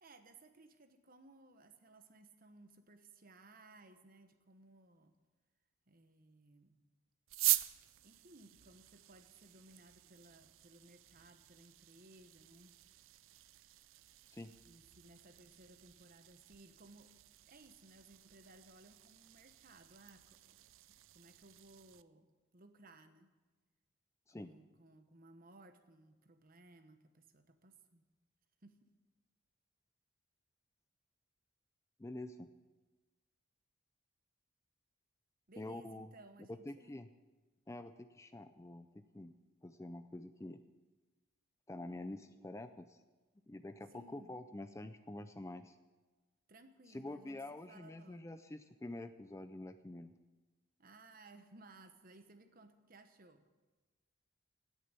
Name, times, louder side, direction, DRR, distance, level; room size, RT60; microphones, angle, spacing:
voice 1, 0.0-5.1 5.9-6.8 8.0-12.7 14.6-17.2 17.5-20.6 21.1-23.3 24.3-28.0 28.6-28.8 35.5-37.0 43.9-44.3 46.5-48.3 50.8-53.4, right 2 dB, 40° right, 9 dB, 1.1 m, -60 dB
sound 1, 7.3-22.0, right 17 dB, 70° right, 0.4 m, -44 dB
voice 2, 32.0-32.5 35.6-36.1 36.5-37.1 37.7-39.3 39.6-40.6 41.7-43.0 43.5-45.8 46.9-50.1, left 1 dB, 15° left, 10 dB, 0.4 m, -47 dB
17.0 x 6.8 x 9.0 m, 1.2 s
head